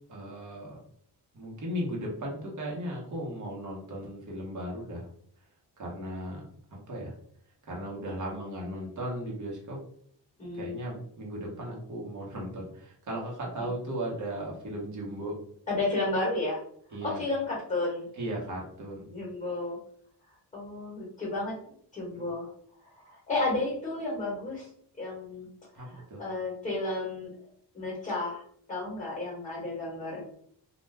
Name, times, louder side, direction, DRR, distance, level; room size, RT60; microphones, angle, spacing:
voice 1, 0.1-0.8 1.3-5.1 5.8-7.1 7.7-9.8 10.5-15.3 16.9-17.2 18.1-19.0 22.1-22.2 25.7-26.2, right 1 dB, 45° right, -2 dB, 1.0 m, -36 dB
voice 2, 10.4-10.8 13.6-13.7 15.7-16.6 17.0-18.1 19.0-19.8 20.5-21.5 21.9-22.5 23.0-24.7 25.0-25.5 25.8-27.3 27.7-28.4 28.7-30.2, left 2 dB, 15° left, -5 dB, 1.1 m, -32 dB
2.4 x 2.2 x 3.2 m, 0.62 s
wide cardioid pair, 155°, 41 cm